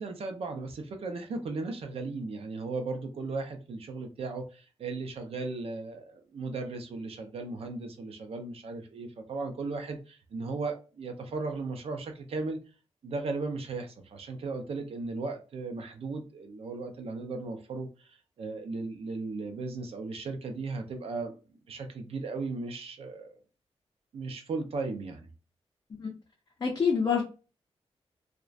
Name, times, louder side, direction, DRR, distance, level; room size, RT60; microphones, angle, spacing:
voice 1, 0.0-12.6 13.0-21.4 21.7-23.4 24.1-25.2, right 3 dB, 65° right, 0.5 m, -36 dB
voice 2, 26.6-27.2, left 6 dB, 35° left, 0.5 m, -26 dB
2.4 x 2.1 x 2.3 m
wide cardioid pair, 130°, 11 cm